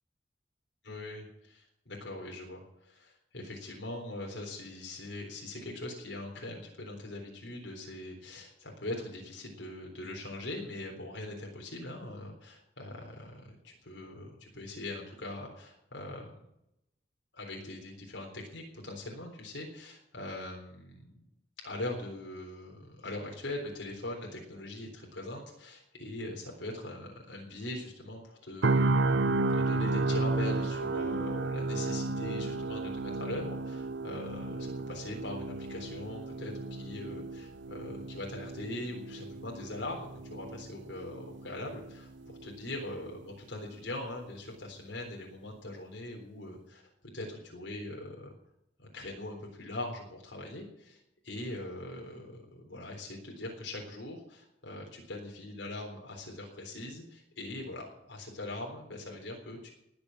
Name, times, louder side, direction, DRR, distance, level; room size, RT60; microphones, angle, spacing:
voice 1, 0.8-16.4 17.3-21.2 21.6-46.8 47.1-48.3 48.8-59.7, left 1 dB, 75° left, 0 dB, 3.8 m, -41 dB
sound 1, 28.6-42.6 43.0-43.2, right 3 dB, 80° right, 0.7 m, -33 dB
19.5 x 7.0 x 8.5 m, 0.83 s
head